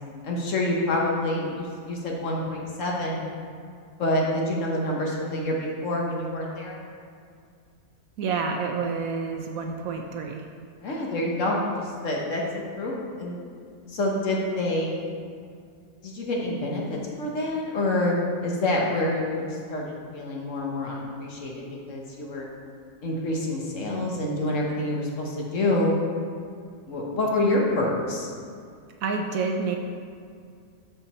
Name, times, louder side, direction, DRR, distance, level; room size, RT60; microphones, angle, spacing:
voice 1, 0.2-3.2 4.0-6.8 10.8-12.4 12.8-13.4 13.9-15.1 16.0-18.2 18.4-22.5 23.0-25.9 26.9-28.3, left 1 dB, 55° left, -2 dB, 1.3 m, -27 dB
voice 2, 8.2-10.5 29.0-29.8, right 5 dB, 70° right, 3 dB, 0.9 m, -28 dB
6.8 x 5.6 x 4.2 m, 2.3 s
omnidirectional pair, 1.7 m